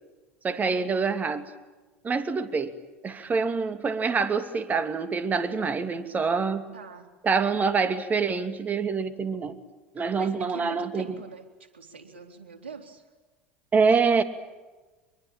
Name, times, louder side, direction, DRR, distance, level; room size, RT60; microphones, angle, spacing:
voice 1, 0.4-1.5 2.0-2.8 3.0-6.7 7.2-9.6 9.9-11.2 13.7-14.2, right 5 dB, 25° right, 9 dB, 2.8 m, -26 dB
voice 2, 6.7-7.1 10.2-13.0, right 5 dB, 80° right, 5 dB, 3.6 m, -43 dB
25.0 x 23.0 x 8.9 m, 1.2 s
hypercardioid pair, 75°, 6 cm